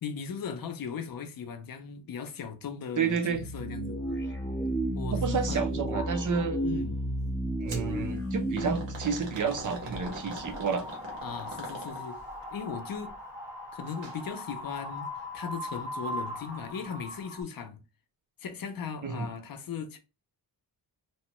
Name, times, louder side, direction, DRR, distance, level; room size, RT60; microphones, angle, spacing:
voice 1, 0.0-4.0 4.9-5.9 6.6-7.0 11.2-12.2 12.5-13.1 13.7-15.1 15.3-17.8 18.4-20.0, left 6 dB, 55° left, 0.6 m, -38 dB
voice 2, 3.0-3.4 5.1-6.7 7.6-10.9 19.0-19.3, right 6 dB, 50° right, 0.5 m, -30 dB
sound 1, 3.3-10.5, right 1 dB, 5° left, 0.8 m, -33 dB
sound 2, 7.7-7.9 8.6-12.3 13.9-14.2 14.5-14.6 15.5-15.6, right 2 dB, 80° right, 1.3 m, -42 dB
Wind, 9.3-17.4, left 1 dB, 20° right, 1.1 m, -40 dB
3.0 x 2.1 x 2.9 m
wide cardioid pair, 135°, 42 cm